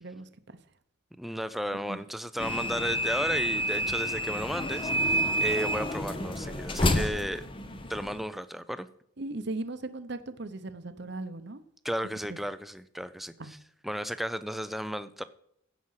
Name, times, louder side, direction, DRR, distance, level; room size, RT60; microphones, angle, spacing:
voice 1, 0.0-0.6 1.9-2.0 9.2-11.6 12.3-12.4 13.4-13.5, right 2 dB, 50° right, 11 dB, 0.8 m, -38 dB
voice 2, 1.2-7.5 7.9-8.9 11.8-13.3 13.8-15.2, equal, ahead, 12 dB, 0.4 m, -34 dB
sound 1, 2.4-8.2, equal, 25° left, 0.8 m, -29 dB
16.0 x 6.1 x 5.7 m, 0.73 s
head